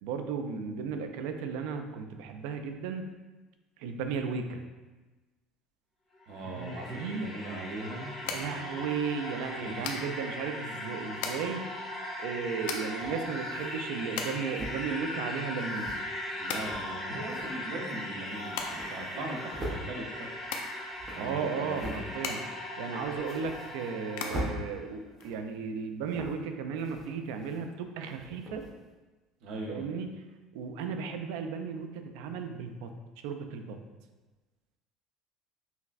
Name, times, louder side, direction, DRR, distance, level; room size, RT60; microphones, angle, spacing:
voice 1, 0.0-3.1 3.8-4.6 6.4-7.3 8.3-11.7 12.2-16.0 21.2-22.5 22.8-28.6 29.7-30.2 30.5-32.9 33.2-33.8, right 5 dB, 80° right, 6 dB, 0.3 m, -35 dB
sound 1, 6.1-24.8, left 1 dB, 15° left, 0.7 m, -39 dB
voice 2, 6.3-9.0 9.6-9.9 16.4-20.3 21.1-22.0 29.4-29.8, right 2 dB, 55° right, 0 dB, 0.7 m, -40 dB
sound 2, 7.0-25.8, left 5 dB, 80° left, 0.4 m, -42 dB
sound 3, 12.1-12.2 12.9-13.8 14.5-14.9 15.6-16.0 16.5-16.9 17.3-17.5 17.9-18.0 18.3-19.8 20.3-22.0 22.5-22.6 23.0-24.0 24.2-24.5 25.1-25.5 26.1-26.5 26.8-27.7 28.1-28.7, right 1 dB, 20° right, 0.5 m, -42 dB
5.7 x 2.1 x 2.4 m, 1.2 s
cardioid pair, 180°, 0 cm